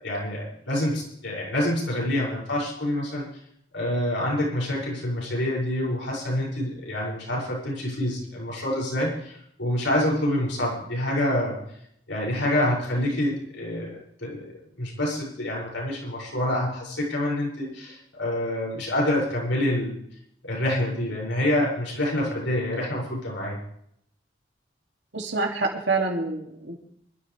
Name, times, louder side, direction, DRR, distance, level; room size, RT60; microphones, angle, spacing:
voice 1, 0.0-3.2 3.7-11.6 12.1-14.4 14.8-19.9 20.4-23.6, left 1 dB, 80° left, -4 dB, 7.3 m, -27 dB
voice 2, 25.1-26.7, right 3 dB, 70° right, 1 dB, 2.9 m, -27 dB
25.0 x 13.5 x 3.6 m, 0.71 s
head